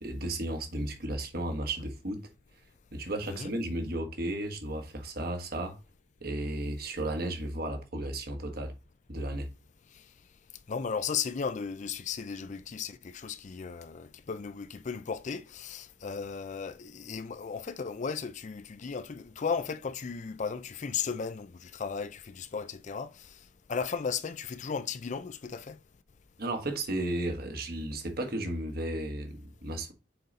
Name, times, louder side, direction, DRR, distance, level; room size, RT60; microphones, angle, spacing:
voice 1, 0.0-2.2 2.9-5.8 6.2-8.7 9.1-9.5 26.4-29.9, right 1 dB, 50° right, 1.4 m, -34 dB
voice 2, 10.7-23.3 23.7-25.8, left 6 dB, 40° left, 0.4 m, -35 dB
6.7 x 3.9 x 4.0 m
head